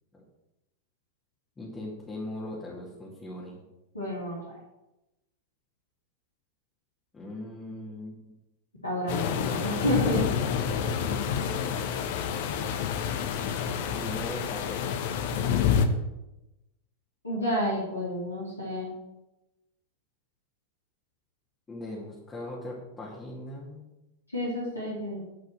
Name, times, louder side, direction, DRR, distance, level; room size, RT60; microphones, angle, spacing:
voice 1, 1.6-3.6 7.1-8.2 13.8-15.0 21.7-23.8, left 1 dB, 15° left, -5 dB, 2.6 m, -39 dB
voice 2, 3.9-4.6 8.8-10.3 17.2-18.9 24.3-25.2, equal, 80° left, -4 dB, 3.0 m, -30 dB
sound 1, 9.1-15.9, left 7 dB, 50° left, 1.1 m, -28 dB
10.5 x 5.5 x 7.8 m, 0.95 s
figure-of-eight pair, 90°, 0 cm